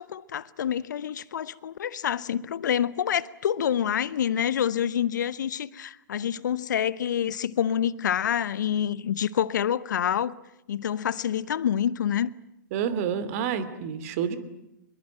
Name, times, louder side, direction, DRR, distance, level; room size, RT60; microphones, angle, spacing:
voice 1, 0.0-10.4 10.7-12.3, left 9 dB, 70° left, 0.9 m, -27 dB
voice 2, 12.7-14.4, right 8 dB, 50° right, 2.7 m, -28 dB
24.0 x 22.0 x 9.0 m
hypercardioid pair, 115°, 10 cm